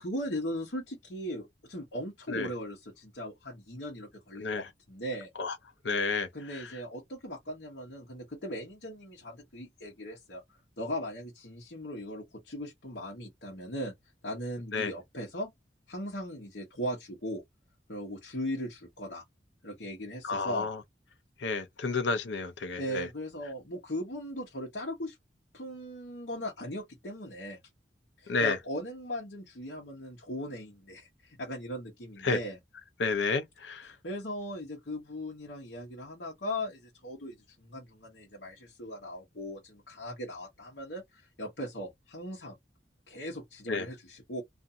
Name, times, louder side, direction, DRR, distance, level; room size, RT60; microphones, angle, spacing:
voice 1, 0.0-5.3 6.3-13.9 14.2-15.5 15.9-17.4 17.9-19.2 19.6-20.7 22.8-25.2 25.5-27.6 28.2-32.6 33.9-42.6 43.1-44.4, equal, 65° left, 1.0 m, -38 dB
voice 2, 5.8-6.3 6.5-6.7 14.7-14.9 20.2-20.8 21.4-23.1 28.3-28.6 32.2-32.4 33.0-33.9 43.7-43.9, left 4 dB, 90° left, 0.6 m, -30 dB
2.5 x 2.5 x 2.6 m
head